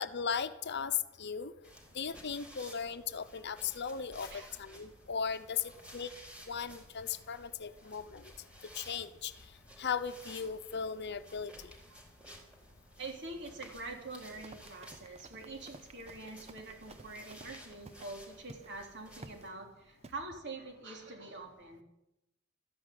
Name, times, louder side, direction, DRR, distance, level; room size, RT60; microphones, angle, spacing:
voice 1, 0.0-1.5 1.9-6.1 6.5-8.3 8.7-9.3 9.8-11.5, left 7 dB, 55° left, 12 dB, 0.9 m, -37 dB
sound 1, 1.6-19.5, equal, 5° right, 4.1 m, -55 dB
voice 2, 13.0-21.8, right 2 dB, 60° right, 3 dB, 3.5 m, -45 dB
Run, 14.2-18.1 18.5-18.7 19.2-19.5 20.0-20.2, right 3 dB, 30° right, 0.7 m, -53 dB
14.0 x 10.5 x 9.4 m, 0.89 s
head